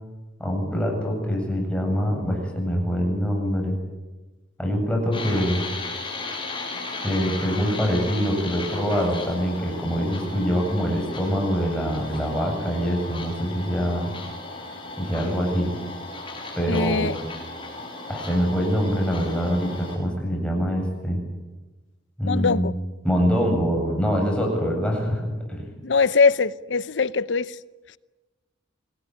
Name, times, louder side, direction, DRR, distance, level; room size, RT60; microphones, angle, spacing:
voice 1, 0.4-3.8 4.6-5.6 7.0-14.1 15.0-15.7 16.6-17.1 18.1-21.2 22.2-22.7 23.0-25.7, equal, 5° left, 8.0 m, -24 dB
sound 1, 5.1-20.0, left 3 dB, 25° left, 6.9 m, -36 dB
voice 2, 16.7-17.2 22.3-22.7 25.8-27.6, left 4 dB, 65° left, 0.8 m, -22 dB
26.0 x 20.0 x 9.8 m
head